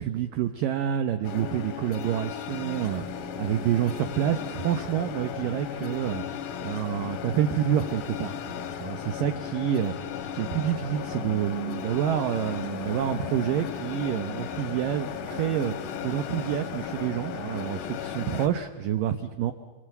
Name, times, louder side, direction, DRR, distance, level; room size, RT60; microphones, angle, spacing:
voice 1, 0.0-6.2 6.6-9.9 10.3-15.7 16.0-19.5, right 10 dB, 80° right, 8 dB, 2.0 m, -28 dB
sound 1, 1.2-18.5, left 7 dB, 65° left, 2.2 m, -35 dB
27.0 x 25.5 x 8.0 m, 1.3 s
omnidirectional pair, 5.2 m